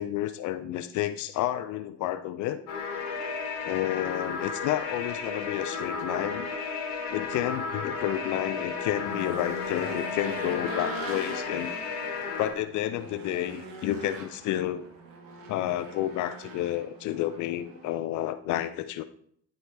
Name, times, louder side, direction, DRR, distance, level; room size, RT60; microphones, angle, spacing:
voice 1, 0.0-2.6 3.6-6.5 7.1-11.7 12.4-14.9 15.5-19.0, left 13 dB, 50° left, 12 dB, 0.5 m, -30 dB
sound 1, 2.7-12.5, left 5 dB, 65° left, 1.3 m, -33 dB
Race car auto racing / Engine, 7.9-18.0, right 3 dB, 55° right, 1.3 m, -42 dB
10.5 x 4.5 x 3.2 m, 0.64 s
figure-of-eight pair, 45°, 41 cm